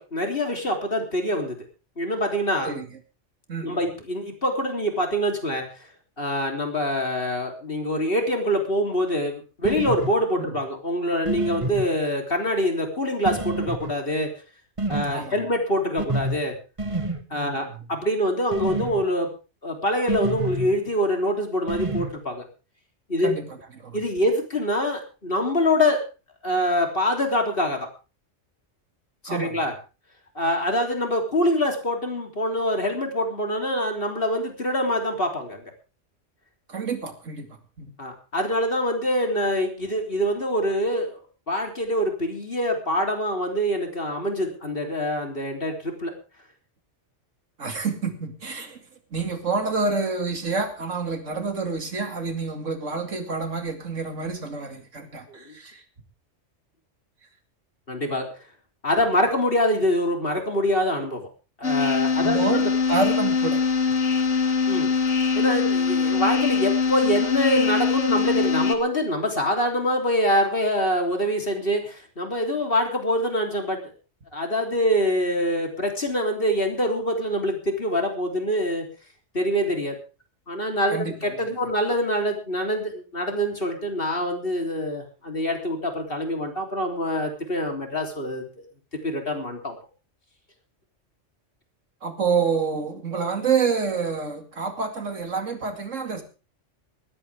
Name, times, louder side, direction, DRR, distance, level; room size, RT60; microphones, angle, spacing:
voice 1, 0.0-1.6 2.0-2.8 3.6-5.9 6.2-14.3 14.9-16.6 17.3-19.3 19.6-22.5 23.1-23.4 23.9-26.0 26.4-27.9 29.2-29.7 30.4-35.6 38.0-41.2 41.5-46.1 55.3-55.5 57.9-58.4 58.8-61.3 61.6-62.7 64.7-64.9 65.4-73.9 74.3-78.9 79.3-80.0 80.5-88.4 89.0-89.8, equal, 50° left, 3 dB, 3.7 m, -25 dB
sound 1, 9.6-10.1 11.3-11.8 13.2-13.9 14.8-15.1 16.0-16.4 16.8-17.2 18.5-19.0 20.1-20.7 21.7-22.1, right 2 dB, 25° right, 1.5 m, -27 dB
voice 2, 17.3-17.9 23.2-24.0 29.3-29.5 36.7-37.5 37.8-37.9 47.6-48.8 49.1-55.8 62.2-62.6 62.9-63.6 80.9-81.1 92.0-96.2, right 4 dB, 85° right, 6 dB, 2.8 m, -28 dB
sound 2, 61.6-68.8, left 5 dB, 75° left, 2.3 m, -22 dB
19.5 x 15.5 x 3.6 m, 0.34 s
omnidirectional pair, 1.3 m